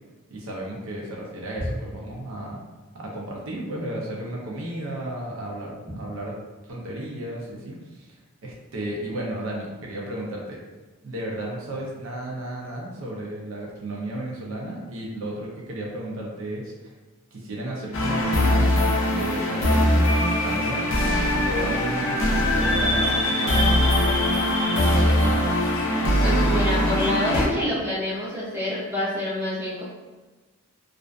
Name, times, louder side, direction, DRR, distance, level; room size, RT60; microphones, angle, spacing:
voice 1, 0.3-2.6 2.9-6.3 6.7-8.1 8.4-10.6 11.0-16.9 17.3-21.1 21.4-24.0 24.7-25.5, right 1 dB, 65° right, -3 dB, 0.5 m, -33 dB
sound 1, 17.9-27.5, left 1 dB, 60° left, 0.4 m, -21 dB
voice 2, 26.2-29.8, left 1 dB, 10° right, -9 dB, 0.6 m, -27 dB
2.5 x 2.4 x 2.2 m, 1.2 s
head